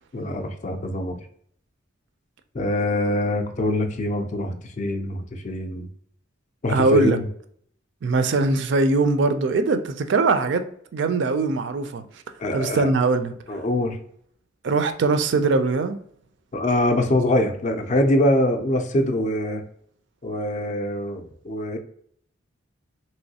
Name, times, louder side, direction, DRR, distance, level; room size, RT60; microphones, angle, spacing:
voice 1, 0.1-1.2 2.5-5.9 6.6-7.3 12.4-12.9 13.5-14.0 16.5-19.6 20.2-21.8, left 1 dB, 35° left, 0.4 m, -24 dB
voice 2, 6.7-7.2 8.0-10.6 10.9-12.0 12.5-13.6 14.6-16.0, right 3 dB, 60° right, 0.3 m, -21 dB
3.0 x 2.9 x 2.7 m
head